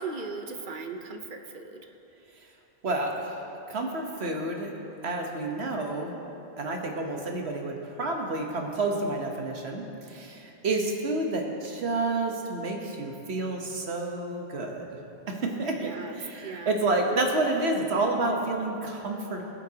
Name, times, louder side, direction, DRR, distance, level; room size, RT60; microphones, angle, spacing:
voice 1, 0.0-1.8 15.8-16.8, right 4 dB, 55° right, 5 dB, 0.8 m, -38 dB
voice 2, 2.8-3.4 3.7-4.7 5.0-6.1 6.6-9.8 10.1-14.9 15.3-19.4, right 2 dB, 75° right, 1 dB, 1.4 m, -29 dB
19.5 x 8.3 x 2.9 m, 2.9 s
omnidirectional pair, 1.1 m